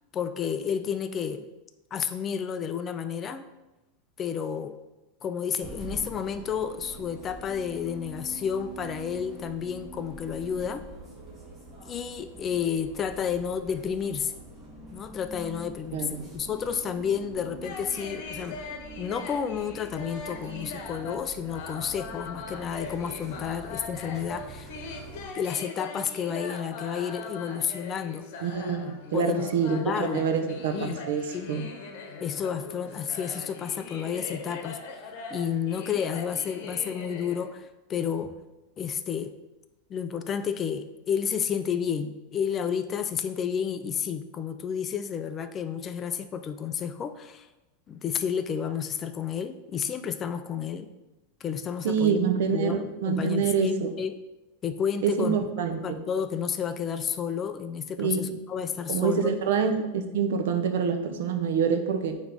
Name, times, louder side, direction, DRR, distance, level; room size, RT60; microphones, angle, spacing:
voice 1, 0.1-1.5 1.9-3.5 4.2-4.8 5.2-10.8 11.8-14.3 14.9-18.6 19.0-24.7 25.3-28.3 29.1-30.3 30.7-31.0 31.3-31.6 32.2-34.8 35.3-38.4 38.8-39.3 39.9-47.5 47.9-50.9 51.4-52.8 53.1-54.2 54.6-55.4 55.8-59.3, left 7 dB, 30° left, 10 dB, 0.4 m, -31 dB
sound 1, 5.6-25.3, right 2 dB, 20° right, 1.9 m, -45 dB
voice 2, 15.9-16.3 28.4-31.7 51.8-53.9 55.0-56.0 58.0-58.3 58.9-62.2, right 6 dB, 75° right, 6 dB, 0.8 m, -26 dB
sound 2, 17.6-37.5, left 4 dB, 60° left, 1.0 m, -41 dB
8.8 x 3.1 x 3.5 m, 1.0 s
supercardioid pair, 125°, 0 cm